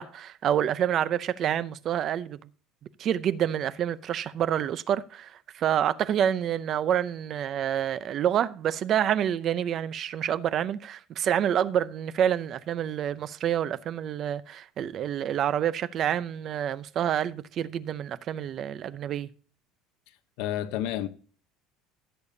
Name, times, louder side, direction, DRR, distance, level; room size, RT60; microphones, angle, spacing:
voice 1, 0.0-2.4 3.0-19.3, right 10 dB, 35° right, 0.6 m, -28 dB
voice 2, 20.1-21.1, left 12 dB, 75° left, 0.8 m, -31 dB
15.5 x 6.9 x 2.7 m
cardioid pair, 165°, 0 cm